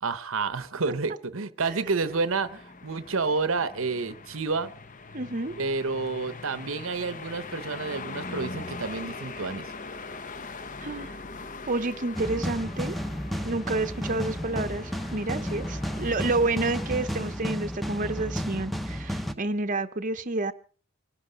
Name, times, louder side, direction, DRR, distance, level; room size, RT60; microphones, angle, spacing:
voice 1, 0.0-4.7 5.6-9.7, right 4 dB, 60° right, 0.9 m, -29 dB
sound 1, 1.7-17.4, left 3 dB, 35° left, 1.0 m, -42 dB
voice 2, 5.1-5.5 10.8-11.2 11.7-13.0 13.4-20.5, right 2 dB, 35° right, 0.9 m, -29 dB
sound 2, 12.1-19.3, equal, ahead, 0.9 m, -32 dB
24.0 x 11.5 x 5.1 m
head